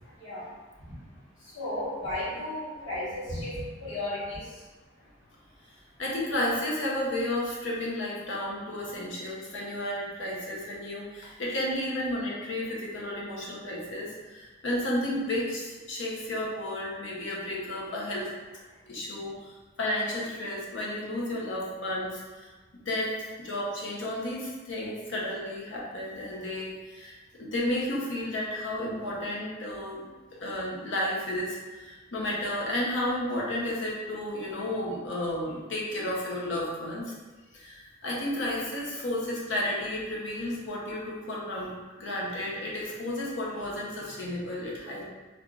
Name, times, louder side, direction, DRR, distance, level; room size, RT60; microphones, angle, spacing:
voice 1, 0.1-4.7, left 1 dB, 90° left, -9 dB, 1.3 m, -35 dB
voice 2, 6.0-18.3 18.9-30.1 30.4-37.1 37.5-41.7 42.0-45.0, left 1 dB, 70° left, -4 dB, 0.8 m, -32 dB
3.4 x 2.4 x 2.4 m, 1.3 s
head